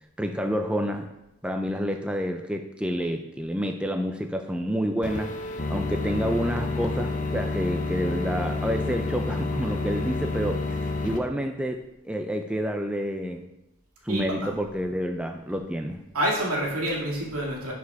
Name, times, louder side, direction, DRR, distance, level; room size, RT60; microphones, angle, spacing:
voice 1, 0.2-1.1 1.4-5.3 5.7-13.5 14.0-16.0, equal, 5° right, 4 dB, 0.3 m, -29 dB
sound 1, 5.0-11.2, left 2 dB, 35° left, 0.7 m, -29 dB
voice 2, 14.1-14.5 16.1-17.7, right 1 dB, 80° right, -3 dB, 2.2 m, -27 dB
10.5 x 4.8 x 3.5 m, 0.92 s
head